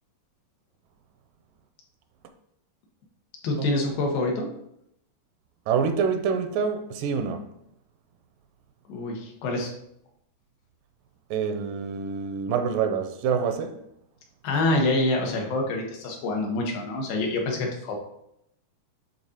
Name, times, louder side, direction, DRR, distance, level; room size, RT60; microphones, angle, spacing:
voice 1, 3.4-4.5 8.9-9.7 14.4-18.0, left 2 dB, 85° left, 2.9 m, -26 dB
voice 2, 5.7-7.5 11.3-13.8, right 6 dB, 85° right, 2.2 m, -26 dB
11.0 x 3.8 x 2.8 m
omnidirectional pair, 3.9 m